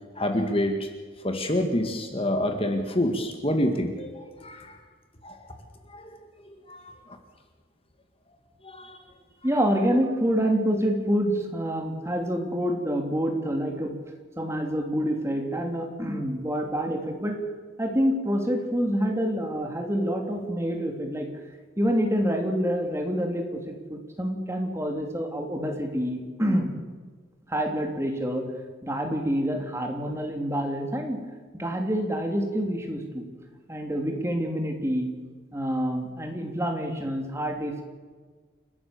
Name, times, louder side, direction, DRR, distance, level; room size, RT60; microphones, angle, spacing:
voice 1, 0.2-0.9 1.2-4.8 5.2-5.5 5.9-6.1 6.5-7.0 8.6-9.0, left 1 dB, 30° left, 5 dB, 2.0 m, -27 dB
voice 2, 9.4-14.0 14.4-17.4 17.8-21.3 21.8-26.7 27.5-28.5 28.8-31.2 31.5-33.3 33.7-35.1 35.5-37.8, equal, 15° right, 3 dB, 3.0 m, -27 dB
29.5 x 13.5 x 7.1 m, 1.4 s
head